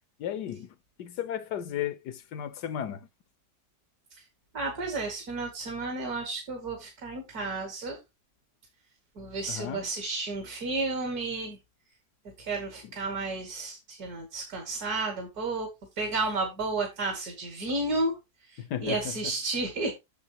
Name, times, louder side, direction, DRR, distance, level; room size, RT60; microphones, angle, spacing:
voice 1, 0.2-3.1 9.5-9.9 12.8-12.9 18.6-19.2, left 10 dB, 75° left, 1.4 m, -35 dB
voice 2, 4.5-8.0 9.1-11.6 12.4-15.7 16.0-19.9, right 3 dB, 60° right, 2.8 m, -32 dB
8.7 x 7.0 x 3.0 m
omnidirectional pair, 1.8 m